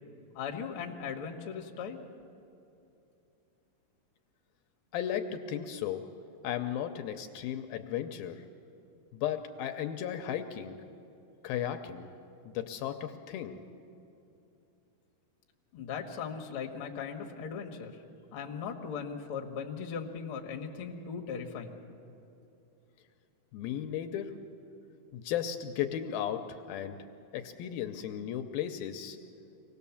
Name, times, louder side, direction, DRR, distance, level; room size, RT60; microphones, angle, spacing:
voice 1, 0.3-2.0 15.7-18.0 18.3-21.8, left 6 dB, 55° left, 2 dB, 1.6 m, -38 dB
voice 2, 4.9-6.1 6.4-8.4 9.1-10.8 11.4-12.1 12.5-13.6 23.5-24.3 25.1-27.0 27.3-29.2, left 10 dB, 75° left, 7 dB, 2.4 m, -35 dB
25.0 x 18.0 x 7.1 m, 2.8 s
omnidirectional pair, 4.6 m